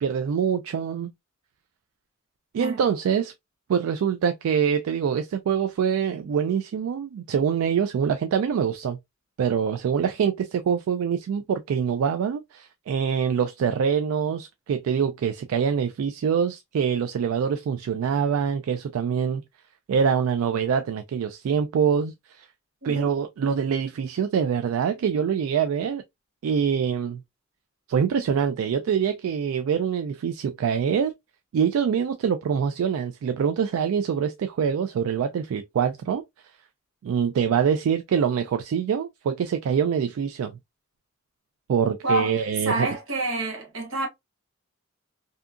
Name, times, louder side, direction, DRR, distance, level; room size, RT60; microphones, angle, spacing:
voice 1, 0.0-1.1 2.5-3.3 3.7-9.0 9.4-19.4 19.9-22.5 22.8-26.0 26.4-27.2 27.9-31.1 31.5-36.2 37.0-40.5 41.7-42.9, right 7 dB, 80° right, 0.3 m, -25 dB
voice 2, 42.0-44.1, right 2 dB, 65° right, 1.0 m, -28 dB
2.7 x 2.4 x 2.3 m
head